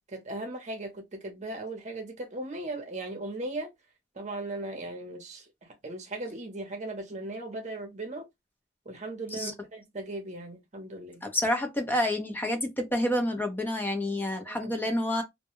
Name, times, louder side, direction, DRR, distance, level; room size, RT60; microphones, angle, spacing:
voice 1, 0.1-3.7 4.1-8.3 8.8-11.2 14.4-14.7, right 2 dB, 40° right, 0.8 m, -38 dB
voice 2, 11.2-15.2, left 1 dB, 10° left, 0.6 m, -28 dB
2.2 x 2.2 x 2.9 m
head